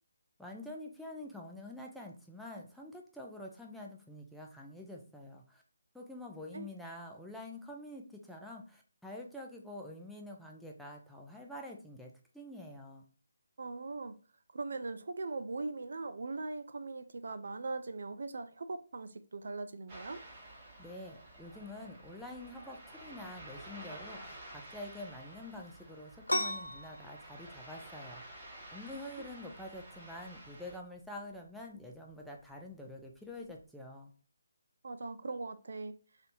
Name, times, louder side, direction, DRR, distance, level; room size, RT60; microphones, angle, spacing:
voice 1, 0.4-5.6 5.9-13.1 20.8-28.2 28.7-34.1, left 1 dB, ahead, 0.5 m, -47 dB
voice 2, 13.6-14.2 14.5-20.2 29.2-29.3 34.8-35.9, right 3 dB, 60° right, 0.4 m, -40 dB
Ocean, 19.9-30.8, right 1 dB, 30° right, 1.3 m, -51 dB
sound 1, 26.3-33.7, left 1 dB, 85° left, 0.5 m, -41 dB
3.3 x 2.7 x 3.9 m
figure-of-eight pair, 150°, 0 cm